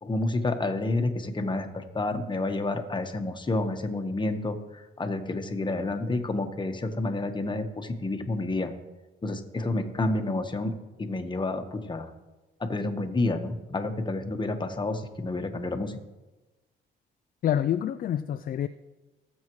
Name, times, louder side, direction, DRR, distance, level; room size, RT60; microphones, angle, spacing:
voice 1, 0.0-8.7 9.2-10.7 11.0-12.1 12.6-16.0, left 2 dB, 25° left, 1.2 m, -29 dB
voice 2, 17.4-18.7, left 10 dB, 45° left, 0.4 m, -27 dB
18.5 x 7.3 x 3.1 m
cardioid pair, 90°, 20 cm